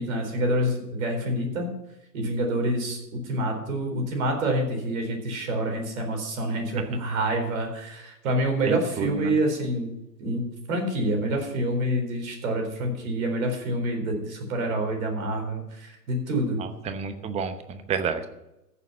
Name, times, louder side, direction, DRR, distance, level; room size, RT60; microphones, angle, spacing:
voice 1, 0.0-1.7 2.1-9.9 10.2-16.6, right 1 dB, 55° right, 4 dB, 4.2 m, -27 dB
voice 2, 8.7-9.3 16.6-18.3, right 6 dB, 15° right, 10 dB, 0.8 m, -30 dB
14.5 x 7.0 x 5.7 m, 0.90 s
figure-of-eight pair, 110°, 48 cm